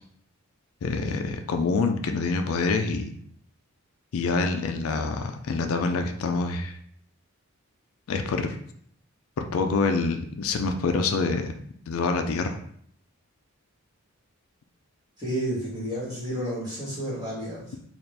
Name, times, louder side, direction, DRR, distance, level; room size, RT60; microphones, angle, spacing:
voice 1, 0.8-3.1 4.1-6.7 8.1-8.6 9.4-11.5 11.9-12.6, left 4 dB, 75° left, 6 dB, 0.4 m, -26 dB
voice 2, 15.2-17.8, equal, 20° right, -7 dB, 1.4 m, -31 dB
4.2 x 2.4 x 3.3 m, 0.65 s
head